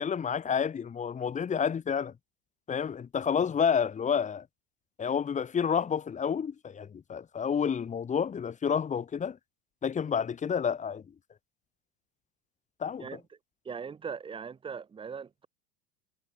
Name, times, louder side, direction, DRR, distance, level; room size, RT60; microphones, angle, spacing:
voice 1, 0.0-2.1 2.7-4.4 5.0-9.4 9.8-11.0 12.8-13.2, left 7 dB, 20° left, 1.8 m, -29 dB
voice 2, 13.6-15.5, right 6 dB, 15° right, 0.8 m, -40 dB
supercardioid pair, 115°, 35 cm